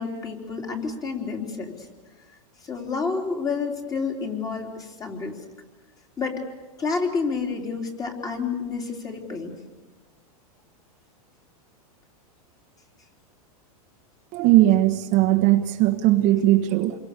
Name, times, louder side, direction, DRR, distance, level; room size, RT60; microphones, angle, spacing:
voice 1, 0.0-1.9 2.3-5.4 6.2-6.4 6.8-9.6, left 4 dB, 20° left, 2 dB, 3.7 m, -29 dB
voice 2, 14.3-17.0, right 15 dB, 40° right, 6 dB, 1.4 m, -19 dB
28.0 x 23.0 x 6.8 m, 1.3 s
supercardioid pair, 145°, 19 cm